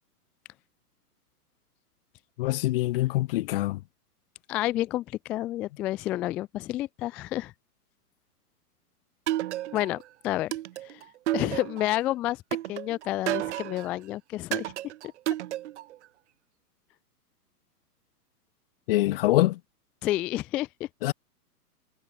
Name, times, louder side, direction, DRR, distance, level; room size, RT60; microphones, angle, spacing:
voice 1, 2.4-3.8 18.9-19.6 21.0-21.1, left 17 dB, 35° left, 0.8 m, -24 dB
voice 2, 4.5-7.5 9.7-10.5 10.8-11.0 11.3-12.4 12.7-14.7 20.0-20.9, left 15 dB, 5° left, 0.3 m, -30 dB
sound 1, 9.3-10.0 10.5-12.0 12.5-13.9 14.5-16.0, right 14 dB, 45° right, 1.0 m, -31 dB
figure-of-eight pair, 115°, 47 cm